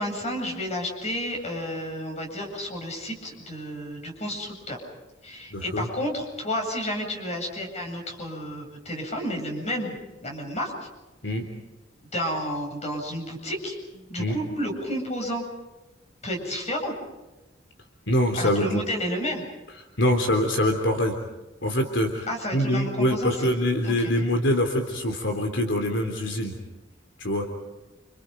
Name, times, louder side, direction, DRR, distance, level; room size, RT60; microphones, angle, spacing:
voice 1, 0.0-4.8 5.2-9.9 10.2-10.7 12.1-13.8 14.1-15.4 16.2-16.9 18.3-19.4 22.3-23.5 23.8-24.2, equal, 35° left, 2 dB, 7.9 m, -31 dB
voice 2, 5.5-5.9 11.2-11.5 14.2-14.4 18.1-18.8 20.0-21.2 21.6-22.3 22.5-26.5 27.2-27.5, left 1 dB, 75° left, 4 dB, 3.6 m, -24 dB
30.0 x 28.5 x 5.3 m, 1.1 s
head